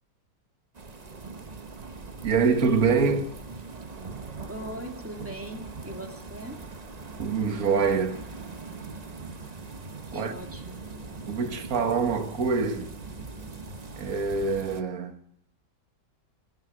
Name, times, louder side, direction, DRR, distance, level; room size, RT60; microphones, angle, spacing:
sound 1, 0.7-14.8, right 3 dB, 30° right, 0.9 m, -41 dB
voice 1, 2.2-3.3 7.2-8.2 10.1-10.3 11.3-12.9 14.0-15.1, right 5 dB, 55° right, 1.8 m, -25 dB
voice 2, 4.5-6.6 10.1-10.8, right 1 dB, 5° right, 2.3 m, -40 dB
19.5 x 11.0 x 6.3 m
omnidirectional pair, 1.9 m